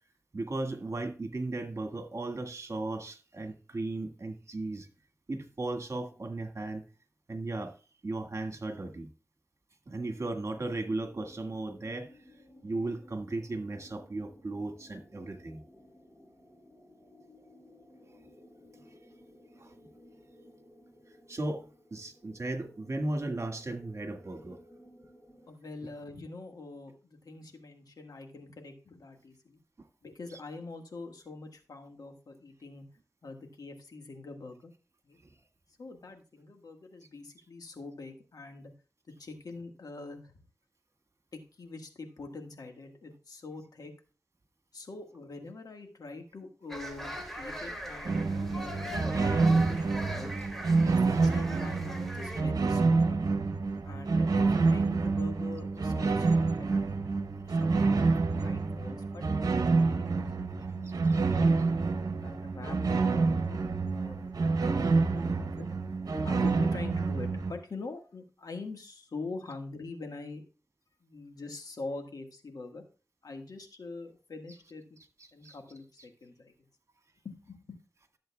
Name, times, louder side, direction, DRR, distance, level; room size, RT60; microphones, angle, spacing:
voice 1, 0.3-4.9 5.3-6.8 7.3-7.7 8.0-9.1 9.9-12.2 12.6-15.6 19.6-19.7 21.3-21.6 21.9-24.6 30.3-30.4 35.2-35.4 47.6-47.7 50.8-51.2 56.0-56.2 60.8-61.2 74.5-74.6 75.2-75.6 76.0-76.1, right 2 dB, 50° right, 5 dB, 1.7 m, -36 dB
sound 1, 10.1-25.5, left 1 dB, 20° left, 3.9 m, -57 dB
voice 2, 25.5-29.6 30.0-32.8 33.2-34.7 35.0-35.2 35.8-38.7 39.2-40.4 41.3-43.9 44.7-50.3 50.8-53.3 53.8-57.1 57.4-58.1 58.4-61.7 62.2-63.5 63.9-65.7 66.2-70.4 71.0-72.8 73.2-74.9 75.3-76.5 77.2-77.8, left 3 dB, 85° left, 4 dB, 1.6 m, -44 dB
sound 2, 46.7-52.4, equal, 5° left, 2.4 m, -40 dB
sound 3, 48.0-67.5, right 4 dB, 80° right, 0.9 m, -27 dB
13.5 x 7.6 x 2.3 m, 0.34 s
cardioid pair, 50°, 6 cm